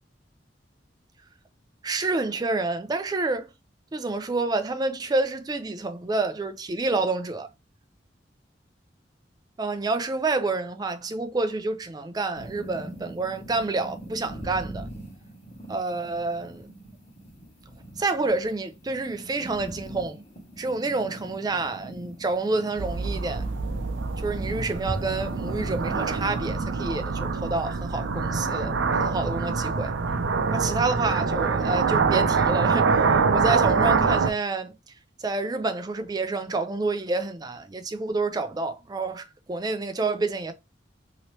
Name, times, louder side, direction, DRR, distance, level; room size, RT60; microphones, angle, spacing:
voice 1, 1.8-3.5 3.9-7.5 9.6-14.9 15.7-16.7 18.0-20.2 20.6-23.5 24.2-29.9 30.5-34.8 35.2-40.5, right 3 dB, 20° right, 0.4 m, -28 dB
sound 1, 12.4-26.1, right 1 dB, 35° left, 1.4 m, -41 dB
sound 2, 22.8-34.3, right 4 dB, 80° right, 0.5 m, -25 dB
2.9 x 2.9 x 3.0 m
head